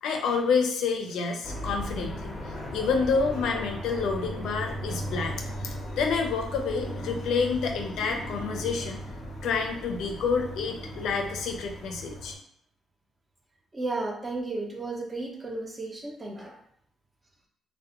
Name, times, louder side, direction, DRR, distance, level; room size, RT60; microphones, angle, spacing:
voice 1, 0.0-2.3 2.7-5.4 5.6-9.0 9.4-12.3, left 5 dB, 80° left, 3 dB, 0.4 m, -28 dB
sound 1, 1.4-12.3, equal, 25° left, 0.6 m, -37 dB
voice 2, 13.7-16.6, right 2 dB, 25° right, 1 dB, 0.5 m, -33 dB
2.3 x 2.1 x 2.9 m, 0.66 s
cardioid pair, 90°, 0 cm